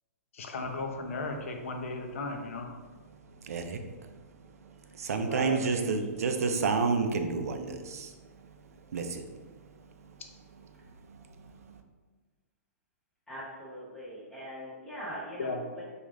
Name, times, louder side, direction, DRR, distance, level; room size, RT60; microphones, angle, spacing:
voice 1, 0.3-2.7 15.4-15.6, left 3 dB, 60° left, 3 dB, 0.5 m, -35 dB
voice 2, 3.2-4.2 4.6-8.3 8.6-10.1 11.0-11.8, right 4 dB, 85° right, 6 dB, 0.4 m, -32 dB
voice 3, 5.2-5.9 13.3-15.9, equal, 5° left, -9 dB, 0.7 m, -41 dB
3.2 x 2.4 x 3.6 m, 1.4 s
hypercardioid pair, 175°, 8 cm